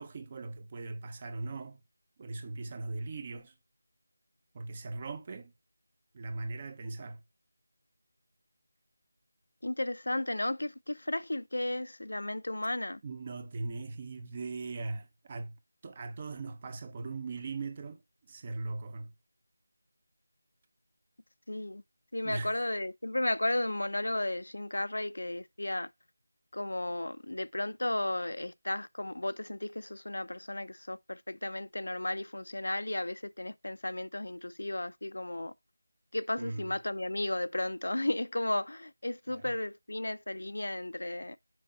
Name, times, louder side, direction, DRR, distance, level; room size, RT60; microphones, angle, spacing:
voice 1, 0.0-1.8 2.2-3.5 4.5-5.5 6.1-7.2 13.0-15.5 15.8-18.0 18.3-19.1 22.2-22.5 36.4-36.7 39.3-39.4, right 3 dB, 20° right, 0.7 m, -39 dB
voice 2, 9.6-13.0 21.5-21.8 22.1-25.9 26.5-35.5 36.1-41.4, left 1 dB, 85° left, 0.7 m, -34 dB
6.3 x 5.6 x 5.4 m
figure-of-eight pair, 175°, 0 cm